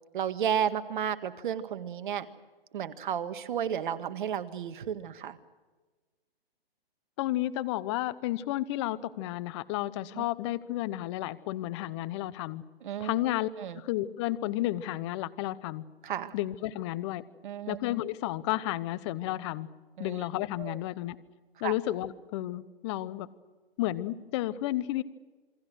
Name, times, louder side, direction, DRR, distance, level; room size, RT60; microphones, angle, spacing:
voice 1, 0.1-2.3 2.7-5.4 10.1-10.2 12.8-13.2 13.6-13.8 16.0-16.3 17.4-17.8 20.0-20.2 20.6-20.8 21.6-21.7, right 9 dB, 55° right, 10 dB, 1.8 m, -32 dB
voice 2, 7.2-12.6 13.0-13.5 13.7-15.8 16.3-17.2 17.7-19.7 20.0-21.2 21.6-23.3 23.8-25.0, left 15 dB, 30° left, 16 dB, 1.0 m, -32 dB
28.0 x 22.5 x 6.4 m, 1.3 s
hypercardioid pair, 140°, 30 cm